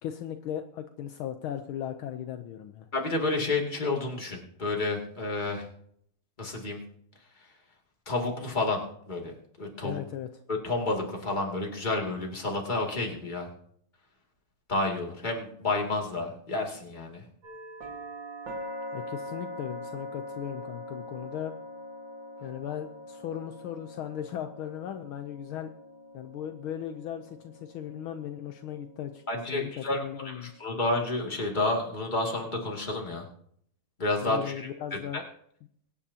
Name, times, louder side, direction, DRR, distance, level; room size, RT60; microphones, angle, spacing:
voice 1, 0.0-2.9 9.8-10.3 18.9-21.5 22.4-25.7 26.1-29.2 29.5-30.6 34.2-35.2, left 10 dB, 75° left, 7 dB, 1.5 m, -37 dB
voice 2, 2.9-5.7 6.4-6.8 8.1-10.0 10.5-13.5 14.7-17.2 29.3-33.2 34.0-34.7 35.1-35.2, left 2 dB, 20° left, -1 dB, 2.4 m, -30 dB
sound 1, 17.4-31.3, equal, 60° right, 2.6 m, -43 dB
23.5 x 9.8 x 2.8 m, 0.66 s
omnidirectional pair, 2.4 m